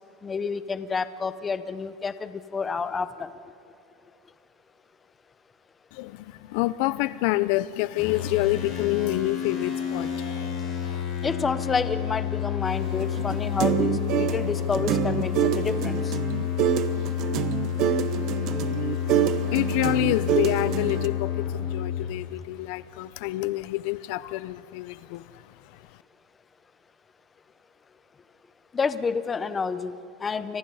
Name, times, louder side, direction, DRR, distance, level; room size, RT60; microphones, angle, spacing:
voice 1, 0.2-3.3 11.2-16.2 20.0-20.2 28.7-30.6, left 5 dB, 15° left, 0.7 m, -29 dB
voice 2, 5.9-11.0 18.8-18.9 19.5-25.4, left 18 dB, 55° left, 0.5 m, -28 dB
sound 1, 8.0-22.1, left 9 dB, 30° left, 6.1 m, -30 dB
sound 2, 12.9-21.1, right 10 dB, 40° right, 1.0 m, -26 dB
29.5 x 25.0 x 5.5 m
supercardioid pair, 165°, 0 cm